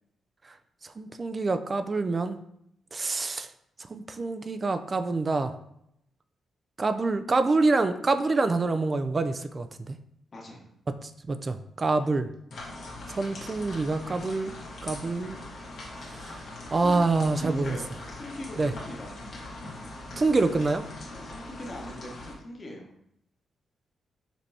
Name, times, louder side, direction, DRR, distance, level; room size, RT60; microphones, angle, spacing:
voice 1, 1.0-2.4 2.9-3.5 3.9-5.5 6.8-10.0 10.9-12.3 13.1-14.5 14.8-15.4 16.1-16.4 16.7-17.8 18.6-18.7 20.2-20.8, right 3 dB, 35° right, 9 dB, 0.3 m, -26 dB
voice 2, 10.3-10.7 12.0-12.1 16.8-17.0 17.3-17.9 18.2-19.1 21.1-22.9, left 1 dB, 40° left, 0 dB, 1.1 m, -40 dB
sound 1, 12.5-22.3, left 2 dB, 65° left, 1.3 m, -41 dB
5.1 x 3.3 x 2.7 m, 0.76 s
cardioid pair, 100°, 0 cm